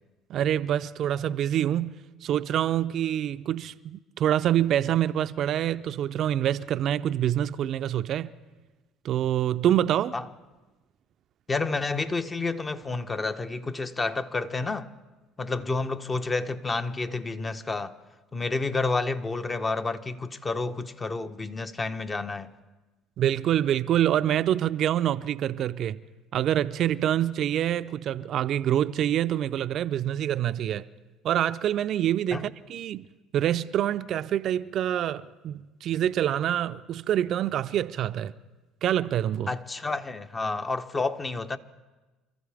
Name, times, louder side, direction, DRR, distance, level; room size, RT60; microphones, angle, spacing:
voice 1, 0.3-8.3 9.0-10.1 23.2-26.0 26.3-30.9 31.2-33.1 33.3-38.3 38.8-39.5, right 11 dB, 55° right, 0.5 m, -26 dB
voice 2, 11.5-14.9 15.4-18.0 18.3-22.5 32.3-32.5 39.5-41.6, left 3 dB, 25° left, 1.0 m, -30 dB
28.5 x 14.0 x 3.5 m
hypercardioid pair, 70°, 0 cm